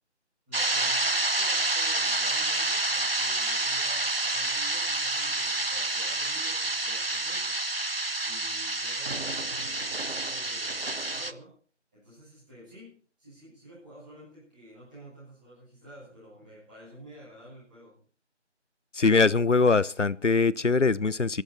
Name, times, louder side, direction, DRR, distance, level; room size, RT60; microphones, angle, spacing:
voice 1, 0.5-7.6 8.2-11.5 11.9-18.0, right 1 dB, 5° right, -11 dB, 7.7 m, -50 dB
sound 1, 0.5-11.3, right 2 dB, 50° right, 1.0 m, -28 dB
voice 2, 18.9-21.4, left 4 dB, 80° left, 21 dB, 0.9 m, -22 dB
24.5 x 11.5 x 4.3 m, 0.41 s
figure-of-eight pair, 175°, 36 cm